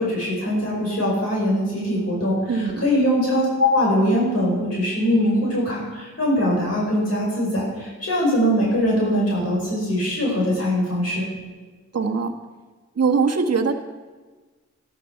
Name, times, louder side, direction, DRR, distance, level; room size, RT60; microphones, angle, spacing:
voice 1, 0.0-11.3, equal, 55° left, -4 dB, 5.1 m, -22 dB
voice 2, 2.5-2.9 11.9-12.3 13.0-13.7, right 5 dB, 55° right, 3 dB, 1.5 m, -21 dB
12.5 x 12.0 x 5.7 m, 1.3 s
cardioid pair, 60°, 29 cm